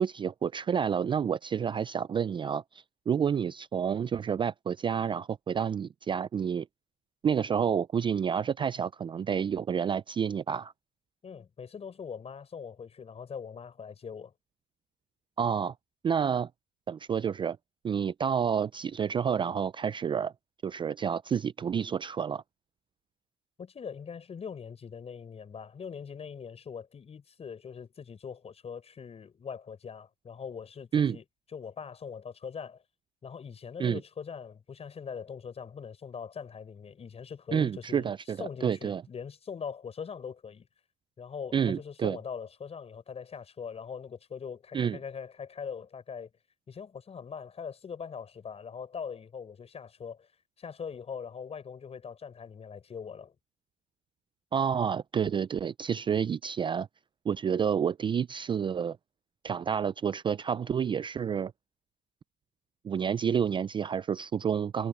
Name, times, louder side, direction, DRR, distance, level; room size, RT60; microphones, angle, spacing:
voice 1, 0.0-6.7 7.2-10.7 15.4-15.7 16.0-16.5 16.9-17.6 17.8-20.3 20.6-22.4 30.9-31.2 33.8-34.0 37.5-39.0 41.5-42.2 44.7-45.0 54.5-56.9 57.3-59.0 59.4-61.5 62.8-64.9, right 7 dB, 30° right, 0.4 m, -29 dB
voice 2, 11.2-14.3 23.6-31.2 31.5-32.8 33.2-38.1 38.4-40.7 41.2-46.3 46.7-50.3 50.6-53.3, left 6 dB, 35° left, 6.5 m, -42 dB
cardioid pair, 110°, 17 cm